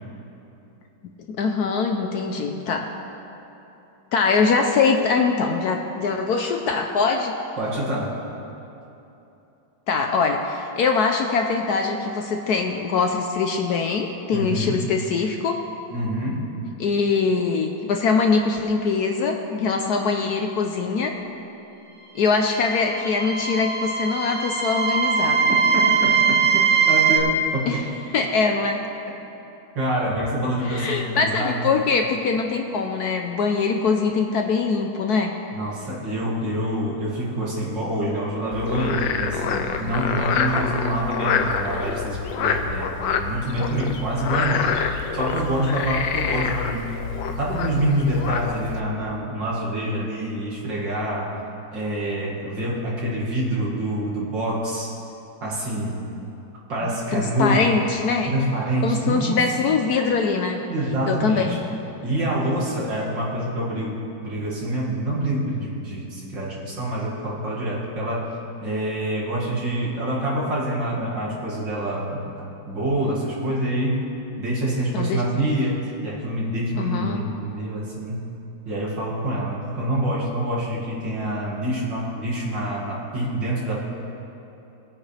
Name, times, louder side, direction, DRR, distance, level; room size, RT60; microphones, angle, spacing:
voice 1, 1.3-2.9 4.1-7.4 9.9-15.7 16.8-21.2 22.1-25.5 27.7-27.9 28.1-28.8 30.7-35.3 57.1-58.3 58.8-60.6 61.1-61.6 74.9-75.2 76.8-77.2, left 4 dB, 65° left, 4 dB, 1.0 m, -23 dB
voice 2, 7.6-8.3 14.3-14.9 15.9-16.5 25.5-27.8 29.7-31.7 35.5-44.8 45.1-46.9 47.3-51.4 51.7-55.0 55.4-56.1 56.7-57.8 58.3-59.4 60.7-61.6 62.0-68.4 68.6-74.1 74.4-78.2 78.7-83.8, right 1 dB, 70° right, -6 dB, 2.8 m, -26 dB
sound 1, 22.3-27.2, right 6 dB, 45° right, 0.4 m, -21 dB
Frog, 38.5-48.8, left 6 dB, 80° left, 1.4 m, -26 dB
20.5 x 8.9 x 3.3 m, 3.0 s
omnidirectional pair, 2.1 m